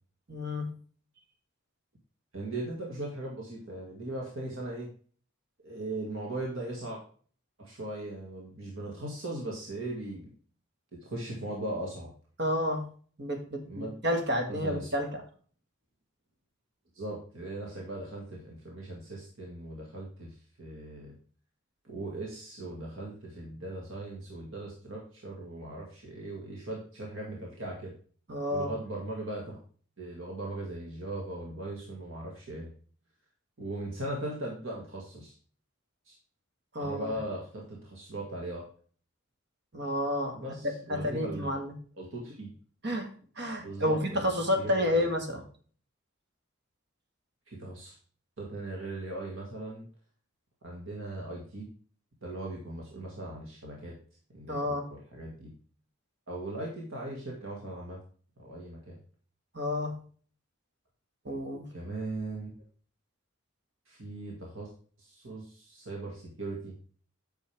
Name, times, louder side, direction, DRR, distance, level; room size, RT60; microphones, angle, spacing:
voice 1, 0.3-0.7 12.4-12.8 13.2-15.1 28.3-28.7 36.7-37.1 39.7-40.4 40.9-41.7 42.8-43.1 43.4-45.4 54.5-54.9 59.5-59.9 61.3-61.7, left 1 dB, 55° right, 4 dB, 1.9 m, -30 dB
voice 2, 2.3-4.9 5.6-7.0 7.6-10.3 11.0-12.1 13.7-13.9 14.6-14.9 16.9-21.1 21.8-27.9 28.5-29.6 30.0-32.7 33.6-35.3 36.1-36.2 36.8-38.6 40.3-41.5 42.0-42.5 43.6-44.2 44.5-45.0 47.5-48.0 48.4-49.8 50.6-51.7 52.2-54.0 54.3-55.5 56.3-58.0 58.4-59.0 61.7-62.5 63.9-64.7 65.0-66.8, right 2 dB, 70° right, -2 dB, 2.1 m, -39 dB
8.9 x 6.2 x 3.5 m, 0.43 s
head